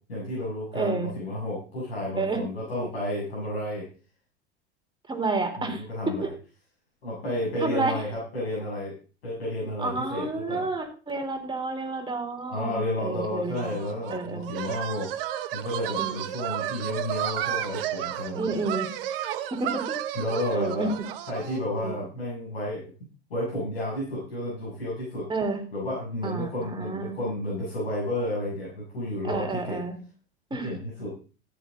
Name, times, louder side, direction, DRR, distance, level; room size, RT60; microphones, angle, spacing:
voice 1, 0.1-3.9 5.6-6.3 7.0-9.0 9.2-10.7 12.5-15.1 15.5-18.5 20.1-20.9 21.3-22.8 23.3-25.3 25.7-29.8 30.6-31.1, left 1 dB, 75° left, -6 dB, 7.0 m, -31 dB
voice 2, 0.7-1.1 2.2-2.4 5.1-6.3 7.6-8.0 9.8-14.5 16.0-16.3 18.3-18.9 19.6-19.8 20.5-20.9 21.8-22.0 25.3-25.6 26.2-27.2 29.2-30.0 30.5-30.7, right 3 dB, 15° right, 4 dB, 3.8 m, -30 dB
sound 1, 13.5-21.7, right 12 dB, 65° right, 1.3 m, -32 dB
13.5 x 11.5 x 3.9 m, 0.36 s
figure-of-eight pair, 80°, 31 cm